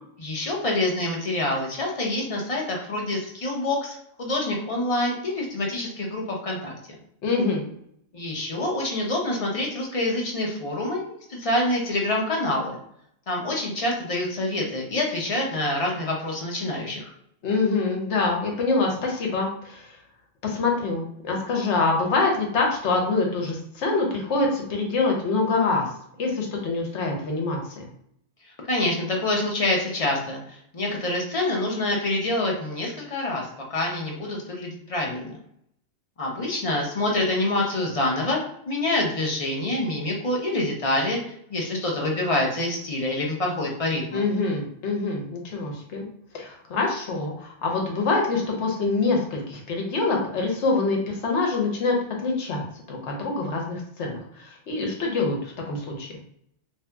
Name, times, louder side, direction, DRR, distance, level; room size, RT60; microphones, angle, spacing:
voice 1, 0.2-6.7 8.1-12.8 13.3-17.1 28.4-35.4 36.2-38.4 38.7-41.2 41.5-44.3, left 1 dB, 45° left, -1 dB, 0.5 m, -26 dB
voice 2, 7.2-7.6 17.4-20.0 20.4-25.9 26.2-27.9 44.1-46.1 46.3-52.0 52.2-52.6 52.9-56.1, left 3 dB, 70° left, 0 dB, 1.0 m, -25 dB
2.7 x 2.6 x 2.2 m, 0.70 s
omnidirectional pair, 1.3 m